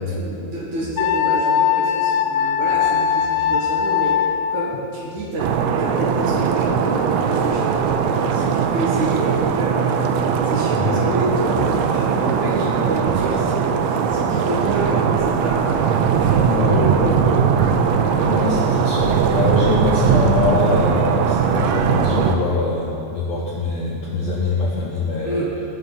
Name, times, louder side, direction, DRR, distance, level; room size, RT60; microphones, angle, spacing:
voice 1, 0.0-18.2 25.2-25.6, right 1 dB, 55° right, -4 dB, 2.6 m, -28 dB
Wind instrument woodwind instrument, 1.0-4.8, left 8 dB, 90° left, 2.0 m, -20 dB
sound 1, 5.4-22.4, right 6 dB, 85° right, 2.7 m, -19 dB
voice 2, 16.4-16.8 18.2-25.5, left 3 dB, 70° left, -5 dB, 1.7 m, -23 dB
20.0 x 6.7 x 4.0 m, 2.8 s
omnidirectional pair, 4.6 m